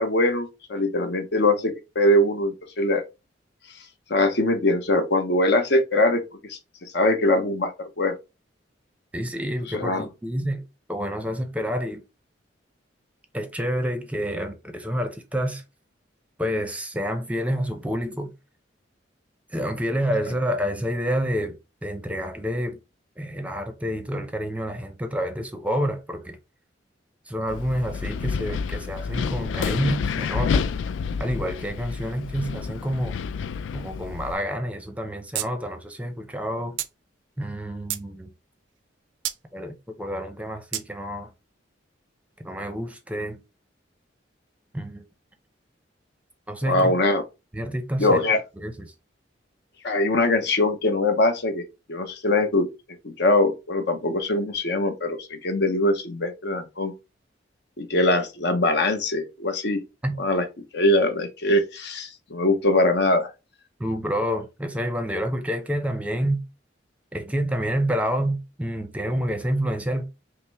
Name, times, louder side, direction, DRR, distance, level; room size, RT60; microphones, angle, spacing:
voice 1, 0.0-3.0 4.1-6.2 6.5-8.2 9.7-10.1 46.7-47.2 48.0-48.4 49.8-52.7 53.0-56.9 57.8-59.8 60.2-60.4 60.7-63.3, left 1 dB, 65° left, 0.8 m, -22 dB
voice 2, 9.1-10.6 10.9-12.0 13.3-15.6 16.4-18.3 19.5-22.8 23.2-26.4 27.3-30.7 31.2-33.2 33.7-36.8 37.4-38.3 39.5-41.3 42.4-43.4 44.7-45.0 46.5-46.9 47.5-48.2 48.6-48.9 60.0-60.2 63.8-66.4 67.1-70.0, equal, 10° right, 0.6 m, -28 dB
Wind, 27.5-34.3, left 6 dB, 85° left, 0.3 m, -29 dB
sound 1, 35.3-35.5 35.8-35.9 36.8-36.9 37.5-38.1 39.2-39.4 40.7-40.9, right 13 dB, 85° right, 0.5 m, -29 dB
5.6 x 2.0 x 3.4 m
head